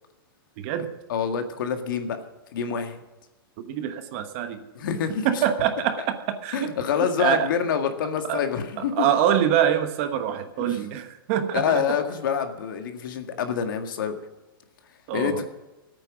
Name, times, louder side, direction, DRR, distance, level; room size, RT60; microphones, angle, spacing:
voice 1, 0.6-0.9 3.6-4.6 5.2-6.7 7.2-7.5 8.3-8.4 8.8-12.0 15.1-15.4, right 10 dB, 35° right, 8 dB, 1.2 m, -25 dB
voice 2, 1.1-2.2 2.5-3.0 4.8-5.3 6.5-9.1 10.6-10.8 11.5-14.2 15.1-15.5, left 7 dB, 60° left, 6 dB, 1.9 m, -26 dB
15.5 x 9.0 x 6.2 m, 1.1 s
hypercardioid pair, 165°, 12 cm